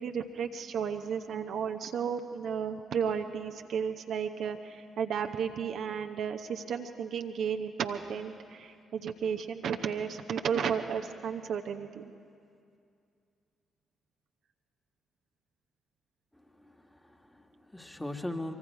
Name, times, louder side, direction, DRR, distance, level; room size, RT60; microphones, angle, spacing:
voice 1, 0.0-12.0, right 7 dB, 60° right, 5 dB, 0.8 m, -33 dB
voice 2, 16.6-18.5, left 1 dB, 10° left, 4 dB, 1.7 m, -40 dB
24.0 x 24.0 x 4.7 m, 2.4 s
hypercardioid pair, 40°, 0 cm